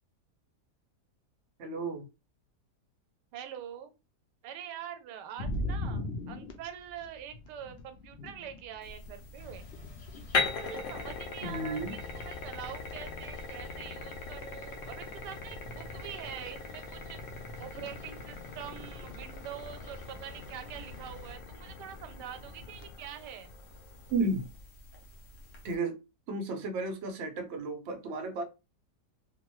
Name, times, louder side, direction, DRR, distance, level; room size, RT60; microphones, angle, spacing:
voice 1, 1.6-2.1 11.4-12.0 24.1-24.5 25.6-26.0 26.3-28.4, right 2 dB, 65° right, 0.7 m, -33 dB
voice 2, 3.3-3.9 4.4-9.7 10.6-17.2 17.6-23.5, right 9 dB, 85° right, 1.2 m, -44 dB
sound 1, 5.4-23.0, left 1 dB, 80° left, 0.6 m, -44 dB
sound 2, 8.8-25.7, left 4 dB, 60° left, 0.9 m, -40 dB
sound 3, 9.3-21.4, left 3 dB, 45° left, 1.2 m, -49 dB
2.8 x 2.1 x 3.0 m
omnidirectional pair, 1.8 m